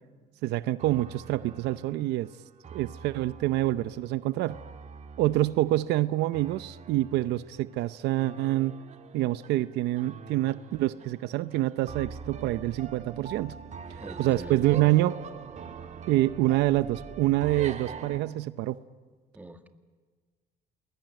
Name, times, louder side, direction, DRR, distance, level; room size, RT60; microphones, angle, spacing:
voice 1, 0.4-2.3 2.7-4.6 5.2-8.7 9.1-13.6 14.2-15.2 16.1-18.8, right 16 dB, 85° right, 15 dB, 0.7 m, -26 dB
sound 1, 0.8-18.2, right 6 dB, 45° right, 1.7 m, -44 dB
voice 2, 14.0-14.7 19.3-19.7, right 2 dB, 10° right, 7 dB, 1.8 m, -46 dB
28.0 x 21.0 x 9.1 m, 1.4 s
cardioid pair, 110°, 17 cm